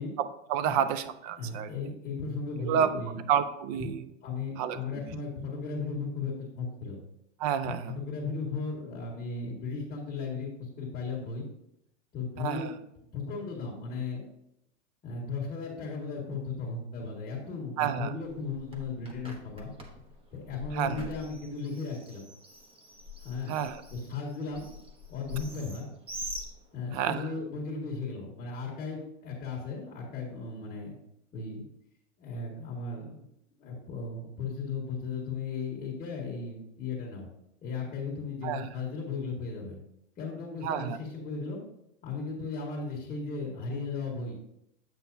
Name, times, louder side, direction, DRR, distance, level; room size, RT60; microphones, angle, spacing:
voice 1, 0.2-1.7 2.6-2.9 3.3-4.1 4.6-4.8 7.4-8.0 12.4-12.7 17.8-18.1 20.7-21.1 23.5-23.8 26.9-27.2 38.4-38.7 40.6-41.0, right 9 dB, 35° right, 12 dB, 0.4 m, -29 dB
voice 2, 1.4-3.2 3.8-3.9 4.2-7.0 7.6-11.4 12.1-12.7 13.1-14.2 15.0-19.7 20.3-22.2 23.2-23.5 23.9-24.7 25.1-25.9 26.7-30.9 31.3-31.7 32.2-33.2 33.6-37.3 37.6-39.8 40.2-41.6 42.0-44.4, left 4 dB, 20° left, -3 dB, 1.6 m, -36 dB
Bird, 18.2-27.1, left 1 dB, 15° right, 0.8 m, -45 dB
8.3 x 6.0 x 2.7 m, 0.81 s
hypercardioid pair, 135°, 36 cm